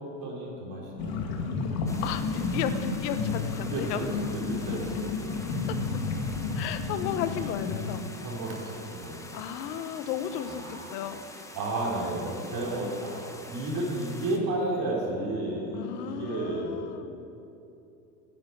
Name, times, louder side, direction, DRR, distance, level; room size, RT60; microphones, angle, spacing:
voice 1, 0.2-1.4 3.6-4.1 4.3-5.2 6.3-6.4 8.2-9.2 10.3-10.9 11.5-13.2 13.5-16.8, right 2 dB, 45° right, -3 dB, 4.0 m, -32 dB
sound 1, 1.0-8.0, left 4 dB, 55° left, 2.2 m, -31 dB
sound 2, 1.9-14.4, left 2 dB, 5° left, 1.1 m, -46 dB
voice 2, 2.0-4.0 5.7-5.8 6.5-8.1 9.3-11.2 15.7-17.3, left 9 dB, 75° left, 11 dB, 1.1 m, -34 dB
10.5 x 9.8 x 9.5 m, 2.8 s
supercardioid pair, 120°, 48 cm